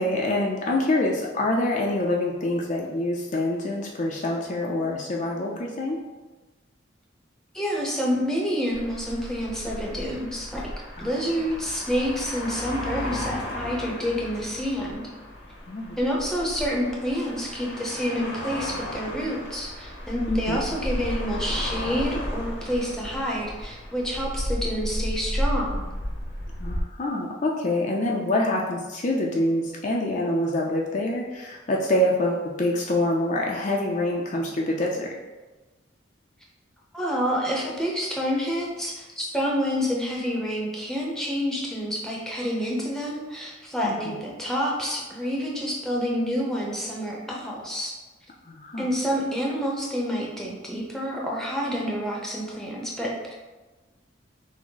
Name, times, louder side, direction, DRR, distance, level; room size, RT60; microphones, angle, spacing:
voice 1, 0.0-6.0 11.0-11.1 15.7-16.0 20.3-20.6 26.6-35.1 43.8-43.9 48.5-48.9, left 1 dB, 40° left, -2 dB, 0.5 m, -26 dB
voice 2, 7.5-10.7 11.0-15.1 16.0-25.9 36.9-47.9 48.8-53.3, equal, 5° left, -3 dB, 0.7 m, -28 dB
sound 1, 8.7-26.8, left 1 dB, 75° left, 1.0 m, -33 dB
6.0 x 2.1 x 3.8 m, 1.2 s
head